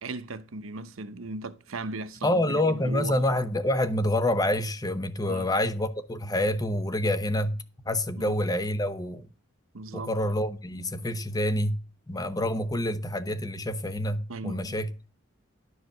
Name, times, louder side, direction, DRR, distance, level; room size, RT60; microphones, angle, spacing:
voice 1, 0.0-3.2 5.3-5.5 8.2-8.3 9.7-10.1 14.3-14.7, right 2 dB, 90° right, 0.9 m, -37 dB
voice 2, 2.2-7.5 7.9-9.3 9.9-11.8 12.1-14.9, left 1 dB, 20° left, 0.8 m, -27 dB
11.5 x 4.8 x 6.5 m
head